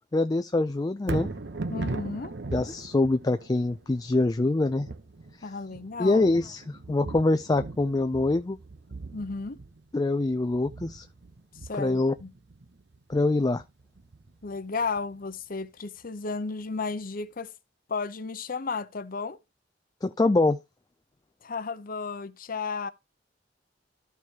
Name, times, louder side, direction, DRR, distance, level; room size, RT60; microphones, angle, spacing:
voice 1, 0.1-1.3 2.5-4.9 6.0-8.6 9.9-11.1 11.7-12.1 13.1-13.6 20.0-20.6, left 2 dB, 20° left, 0.4 m, -24 dB
Thunder, 1.0-15.2 15.6-15.7, right 3 dB, 65° right, 0.8 m, -39 dB
voice 2, 1.7-2.3 5.4-6.3 9.1-9.6 11.6-12.3 14.4-17.5 17.9-19.4 21.4-22.9, left 4 dB, 50° left, 0.7 m, -33 dB
14.0 x 4.7 x 2.8 m
head